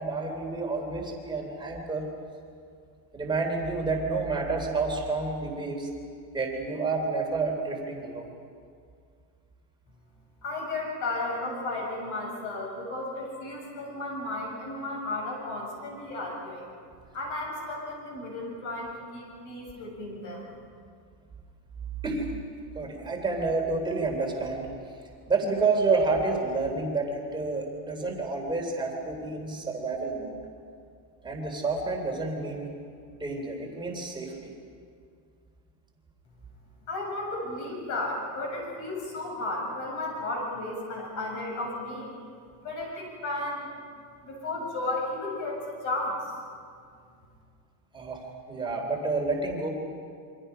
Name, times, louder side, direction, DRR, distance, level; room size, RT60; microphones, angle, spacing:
voice 1, 0.0-2.1 3.1-5.9 6.3-8.3 22.0-22.3 22.8-24.7 25.3-30.4 31.2-32.7 33.2-34.5 47.9-48.2 48.5-49.7, right 3 dB, 10° right, 1 dB, 3.3 m, -29 dB
voice 2, 10.4-16.7 17.1-20.4 36.9-42.1 42.6-43.8 44.2-46.3, left 2 dB, 40° left, -1 dB, 7.9 m, -34 dB
29.0 x 25.0 x 5.6 m, 2.2 s
cardioid pair, 175°, 48 cm